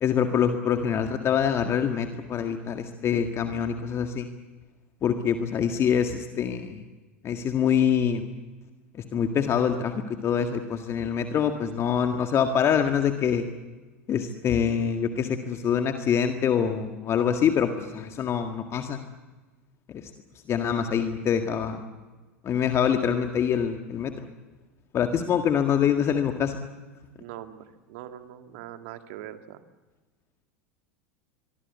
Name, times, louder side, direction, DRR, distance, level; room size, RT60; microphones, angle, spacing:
voice 1, 0.0-4.3 5.0-6.8 7.2-8.3 8.9-13.5 14.1-19.0 19.9-20.1 20.5-21.9 22.4-24.3 24.9-26.6, left 8 dB, 35° left, 6 dB, 1.8 m, -25 dB
voice 2, 27.2-29.6, right 12 dB, 60° right, 8 dB, 2.1 m, -42 dB
24.0 x 23.5 x 8.2 m, 1.3 s
figure-of-eight pair, 80°, 8 cm